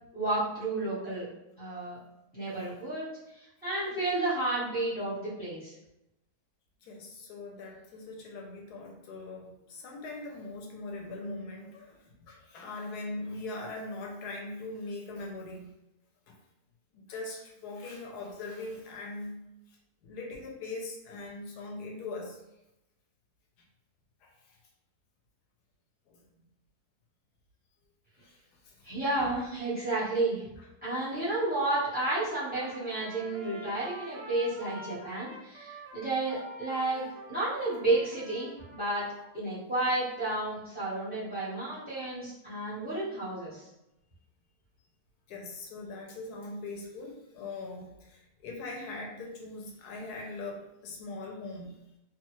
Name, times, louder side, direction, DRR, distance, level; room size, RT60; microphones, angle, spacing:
voice 1, 0.1-1.3 1.6-2.0 2.3-3.0 3.6-5.7 28.8-30.4 30.8-37.0 37.3-39.0 39.3-43.7, right 2 dB, 5° right, -11 dB, 1.1 m, -31 dB
voice 2, 6.8-15.7 16.3-16.4 16.9-19.4 20.0-22.4 24.2-24.6 26.1-26.2 28.2-28.4 28.6-28.8 29.2-29.4 30.6-30.7 37.0-37.1 39.0-39.1 45.3-51.7, left 2 dB, 85° left, 0 dB, 1.2 m, -41 dB
Trumpet, 32.4-39.3, right 1 dB, 60° right, 0.7 m, -47 dB
2.7 x 2.3 x 3.0 m, 0.89 s
omnidirectional pair, 1.7 m